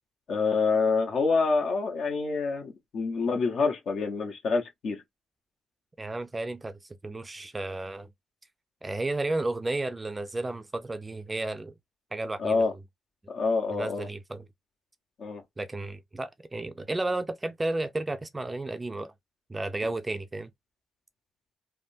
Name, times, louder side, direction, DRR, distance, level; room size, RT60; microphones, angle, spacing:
voice 1, 0.3-5.0 12.4-12.7 13.3-14.1 15.2-15.4, left 4 dB, 65° left, 0.8 m, -27 dB
voice 2, 6.0-8.1 8.8-11.7 12.1-12.6 13.7-14.5 15.6-19.1 19.5-20.5, right 2 dB, 20° right, 0.4 m, -33 dB
3.4 x 2.2 x 2.6 m
cardioid pair, 90°, 0 cm